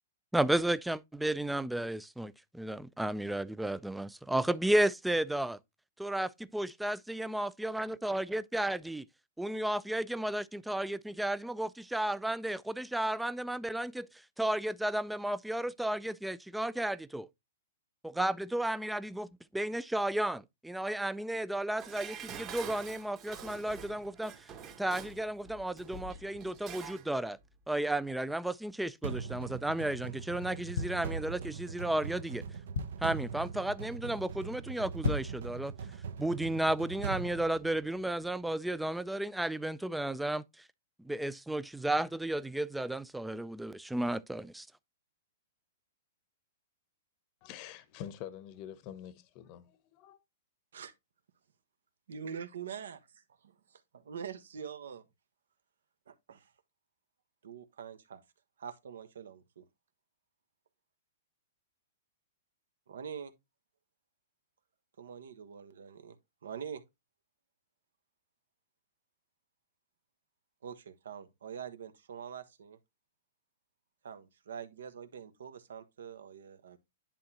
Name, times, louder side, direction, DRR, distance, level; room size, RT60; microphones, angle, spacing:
voice 1, 0.3-5.6 6.0-9.1 9.4-14.1 14.4-17.3 18.0-24.3 24.8-27.4 27.7-32.4 33.0-35.7 36.2-40.4 41.1-44.7, right 1 dB, 5° right, 0.3 m, -33 dB
Dishes pots and pans, 21.8-27.1 27.4-27.5, right 6 dB, 25° right, 1.1 m, -46 dB
sound 1, 29.0-38.2, right 6 dB, 70° right, 0.8 m, -41 dB
sound 2, 30.7-31.7 32.2-32.3 32.5-33.2 33.7-33.9 34.2-34.3 34.9-35.5 35.9-36.0, left 4 dB, 75° left, 0.6 m, -36 dB
voice 2, 47.4-50.2, left 10 dB, 40° left, 0.8 m, -46 dB
voice 3, 52.1-53.0 54.1-55.0 56.1-56.5 57.4-58.2 58.6-59.6 62.9-63.3 65.0-66.2 66.4-66.8 70.6-72.8 74.0-76.8, right 7 dB, 85° right, 1.3 m, -44 dB
10.5 x 3.7 x 2.9 m
hypercardioid pair, 145°, 0 cm